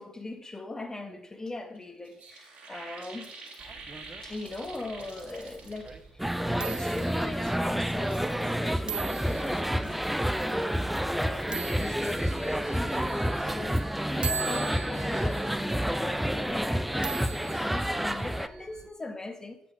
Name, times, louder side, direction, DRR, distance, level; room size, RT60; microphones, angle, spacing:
voice 1, 0.0-3.3 4.2-13.8 14.1-19.6, left 2 dB, 20° left, 6 dB, 1.1 m, -40 dB
sound 1, 1.8-1.9 2.0-6.1 6.4-7.2 7.7-8.6 9.0-12.0 12.3-12.7, right 4 dB, 65° right, 1.9 m, -49 dB
sound 2, 3.6-18.9, right 7 dB, 30° right, 0.8 m, -43 dB
sound 3, 6.2-18.5, equal, 5° right, 0.4 m, -29 dB
8.2 x 5.2 x 5.1 m, 0.76 s
figure-of-eight pair, 45°, 3 cm